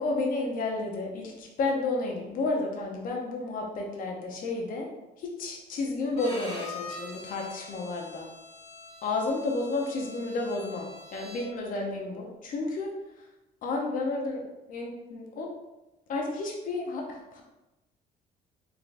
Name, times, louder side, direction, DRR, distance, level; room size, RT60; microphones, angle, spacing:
voice 1, 0.0-4.9 5.2-8.3 9.0-12.9 13.6-15.5 16.1-17.4, left 3 dB, 55° left, 0 dB, 0.7 m, -31 dB
Bowed string instrument, 6.1-11.7, left 2 dB, 40° left, 1.4 m, -44 dB
3.7 x 3.3 x 2.5 m, 0.98 s
cardioid pair, 110°, 17 cm